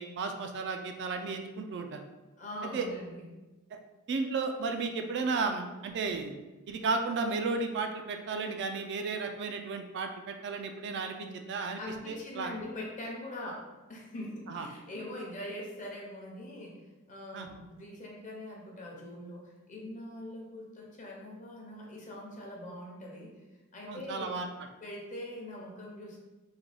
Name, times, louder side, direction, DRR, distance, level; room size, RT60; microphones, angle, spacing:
voice 1, 0.0-2.0 2.7-2.9 3.7-3.8 4.1-6.4 6.7-11.8 12.1-12.5 14.5-14.7 17.3-17.5 23.9-24.5, right 4 dB, 50° right, 5 dB, 0.3 m, -33 dB
voice 2, 2.4-3.2 11.8-16.8 17.1-23.3 23.7-24.4 24.8-26.2, left 1 dB, 35° left, -2 dB, 0.7 m, -42 dB
3.7 x 2.2 x 3.3 m, 1.1 s
head